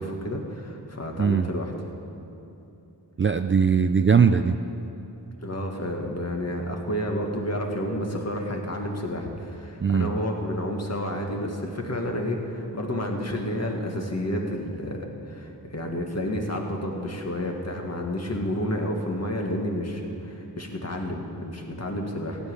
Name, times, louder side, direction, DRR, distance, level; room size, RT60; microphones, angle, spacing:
voice 1, 0.0-1.7 5.4-22.5, left 1 dB, 40° left, 1 dB, 1.8 m, -30 dB
voice 2, 1.2-1.5 3.2-4.6 9.8-10.1, right 6 dB, 30° right, 8 dB, 0.4 m, -20 dB
15.5 x 5.3 x 9.8 m, 2.9 s
wide cardioid pair, 65°, 39 cm